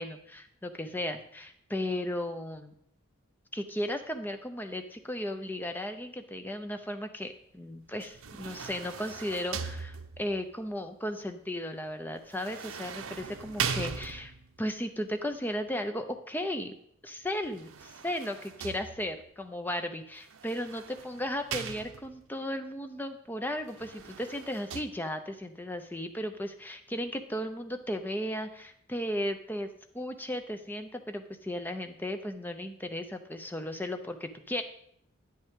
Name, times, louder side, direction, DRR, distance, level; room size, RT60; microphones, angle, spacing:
voice 1, 0.0-2.7 3.5-14.3 14.6-16.8 17.0-29.7 29.9-34.6, left 1 dB, 10° left, 7 dB, 0.5 m, -35 dB
sound 1, 8.0-10.4 12.3-14.6 17.4-19.3 20.3-22.3 23.6-24.8, right 6 dB, 80° right, 0.6 m, -39 dB
9.1 x 8.2 x 3.6 m, 0.67 s
head